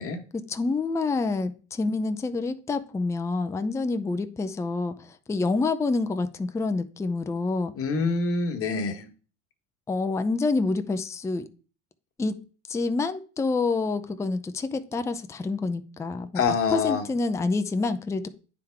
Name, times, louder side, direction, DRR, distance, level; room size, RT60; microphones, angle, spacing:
voice 1, 0.3-7.7 9.9-11.5 12.2-12.4 12.7-16.3 16.7-18.3, left 3 dB, 10° left, 0.4 m, -27 dB
voice 2, 7.7-9.1 16.3-17.0, left 5 dB, 40° left, 1.5 m, -26 dB
9.2 x 3.6 x 4.5 m
supercardioid pair, 110°, 35 cm